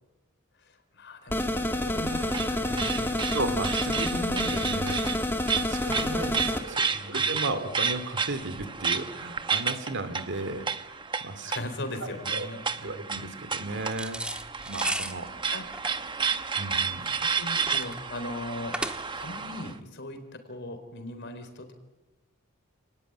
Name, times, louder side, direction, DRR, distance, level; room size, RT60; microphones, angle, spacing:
voice 1, 0.6-3.3 6.8-7.3 11.2-13.2 15.5-15.7 16.7-18.8 19.2-21.7, left 1 dB, 55° left, 7 dB, 4.3 m, -40 dB
sound 1, 1.3-6.6, left 1 dB, 10° left, 1.9 m, -28 dB
sound 2, 1.6-19.7, right 5 dB, 20° right, 1.0 m, -32 dB
voice 2, 3.3-5.0 5.5-10.6 11.2-11.5 12.0-12.5 12.8-14.2 14.6-15.3 16.6-17.1, right 2 dB, 55° right, 10 dB, 2.4 m, -35 dB
sound 3, 13.9-19.3, right 1 dB, 5° right, 1.4 m, -36 dB
29.5 x 19.5 x 9.4 m, 1.1 s
head